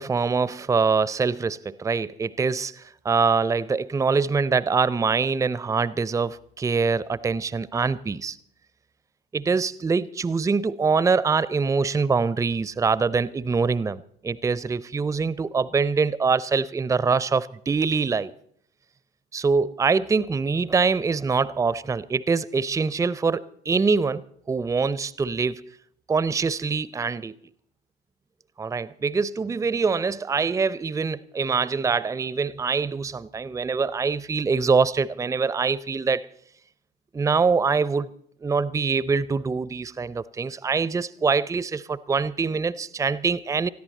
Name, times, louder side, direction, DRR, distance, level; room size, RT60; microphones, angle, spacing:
voice 1, 0.0-8.4 9.3-18.3 19.3-25.6 26.1-27.4 28.6-36.3 37.1-38.1 38.4-43.7, right 5 dB, 10° right, 0.5 m, -24 dB
20.0 x 14.0 x 4.3 m
figure-of-eight pair, 55°, 30 cm